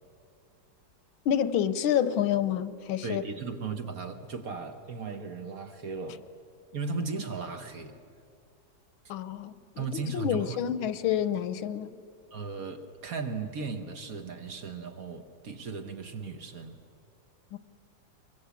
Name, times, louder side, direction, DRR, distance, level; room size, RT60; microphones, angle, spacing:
voice 1, 1.2-3.2 9.1-11.9 17.5-17.6, left 9 dB, 85° left, 14 dB, 1.6 m, -28 dB
voice 2, 3.0-6.2 6.7-8.0 9.8-10.6 12.3-16.8, right 4 dB, 50° right, 6 dB, 1.6 m, -36 dB
25.0 x 23.0 x 8.4 m, 2.4 s
omnidirectional pair, 2.1 m